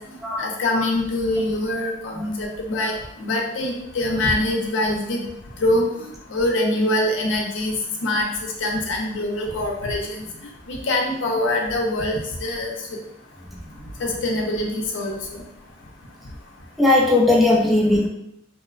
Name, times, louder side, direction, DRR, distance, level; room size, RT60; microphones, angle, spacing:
voice 1, 0.4-5.2 5.6-7.8 8.0-10.2 10.7-12.7 14.0-15.4, left 1 dB, 80° left, 0 dB, 0.5 m, -24 dB
voice 2, 16.8-18.1, left 2 dB, ahead, -3 dB, 0.3 m, -17 dB
2.9 x 2.1 x 2.4 m, 0.77 s
head